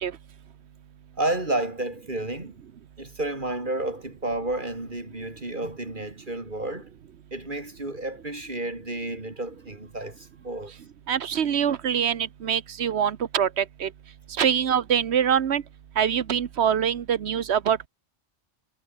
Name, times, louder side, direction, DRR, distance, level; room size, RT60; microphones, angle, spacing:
voice 1, 1.2-2.6 3.0-6.9 7.3-10.7, right 2 dB, 50° right, 4.1 m, -31 dB
voice 2, 11.1-13.9 14.4-15.6 16.0-17.9, right 8 dB, 80° right, 1.2 m, -24 dB
omnidirectional pair, 1.1 m